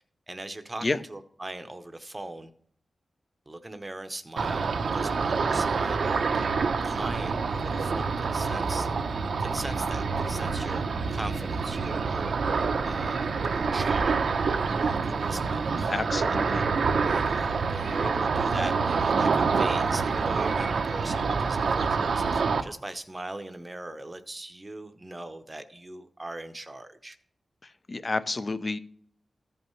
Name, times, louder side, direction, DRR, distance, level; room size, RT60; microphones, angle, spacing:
voice 1, 0.3-2.5 3.5-6.5 6.8-8.9 9.4-10.8 11.1-16.7 17.0-27.2, right 2 dB, 25° right, 9 dB, 0.7 m, -40 dB
Ocean, 4.4-22.6, right 4 dB, 80° right, 0.7 m, -27 dB
voice 2, 15.9-16.6 27.9-28.8, left 3 dB, 40° left, 13 dB, 0.5 m, -29 dB
14.5 x 5.5 x 3.1 m, 0.62 s
wide cardioid pair, 100°, 0 cm